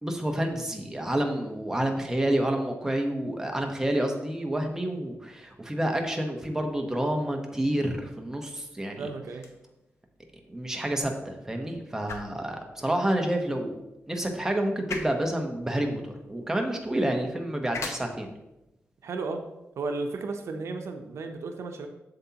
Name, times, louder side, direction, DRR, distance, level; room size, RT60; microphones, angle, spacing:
voice 1, 0.0-9.1 10.5-13.8 14.1-18.3, right 1 dB, 10° right, 2 dB, 1.0 m, -29 dB
voice 2, 9.0-9.5 19.0-19.4 19.8-21.9, right 3 dB, 85° right, 5 dB, 0.7 m, -34 dB
sound 1, 9.3-21.3, left 4 dB, 80° left, 0.9 m, -45 dB
7.7 x 7.1 x 2.9 m, 0.93 s
wide cardioid pair, 110°, 5 cm